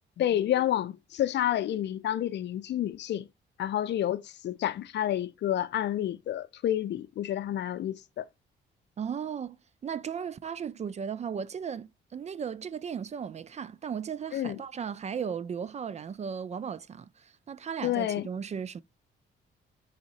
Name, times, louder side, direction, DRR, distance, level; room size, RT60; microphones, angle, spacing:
voice 1, 0.2-3.3 3.6-8.3 14.3-14.6 17.8-18.3, left 11 dB, 60° left, 0.5 m, -29 dB
voice 2, 9.0-9.6 9.8-18.8, right 7 dB, 35° right, 0.4 m, -36 dB
4.2 x 3.6 x 2.9 m
cardioid pair, 90°, 20 cm